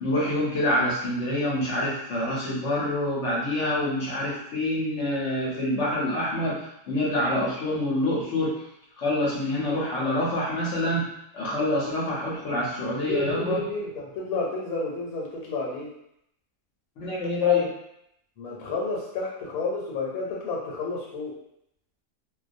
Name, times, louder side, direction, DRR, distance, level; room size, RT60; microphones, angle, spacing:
voice 1, 0.0-8.6 9.0-13.6 17.0-17.7, left 1 dB, 65° left, -5 dB, 0.8 m, -26 dB
voice 2, 13.0-15.9 18.4-21.3, left 3 dB, 85° left, -3 dB, 1.1 m, -31 dB
2.2 x 2.2 x 2.5 m, 0.77 s
omnidirectional pair, 1.5 m